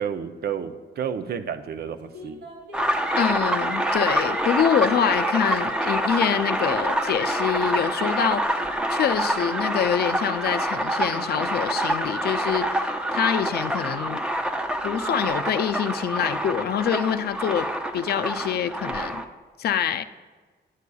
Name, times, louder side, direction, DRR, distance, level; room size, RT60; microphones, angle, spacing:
voice 1, 0.0-2.4, right 8 dB, 60° right, 9 dB, 0.5 m, -31 dB
sound 1, 2.1-3.4 4.0-8.5 9.0-9.1, equal, 85° right, 2.6 m, -42 dB
sound 2, 2.7-19.2, right 1 dB, 5° right, 0.5 m, -26 dB
voice 2, 3.2-8.5 8.9-14.2 14.8-17.7 17.9-19.2 19.6-20.0, left 8 dB, 60° left, 10 dB, 0.4 m, -25 dB
11.0 x 8.2 x 2.3 m, 1.4 s
cardioid pair, 95°, 18 cm